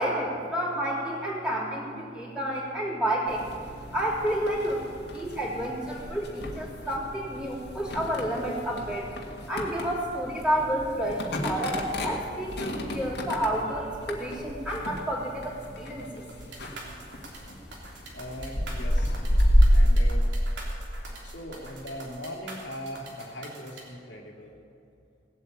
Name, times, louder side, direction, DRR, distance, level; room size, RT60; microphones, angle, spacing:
voice 1, 0.0-3.5 3.9-4.9 5.1-9.1 9.5-16.3, right 1 dB, 5° right, -6 dB, 3.4 m, -30 dB
sound 1, 3.3-20.0, equal, 65° left, 1.9 m, -29 dB
sound 2, 16.3-23.8, right 2 dB, 90° right, 3.3 m, -44 dB
voice 2, 18.1-19.2 19.7-20.2 21.2-24.5, equal, 85° left, 0 dB, 2.4 m, -40 dB
18.0 x 8.3 x 8.6 m, 2.6 s
head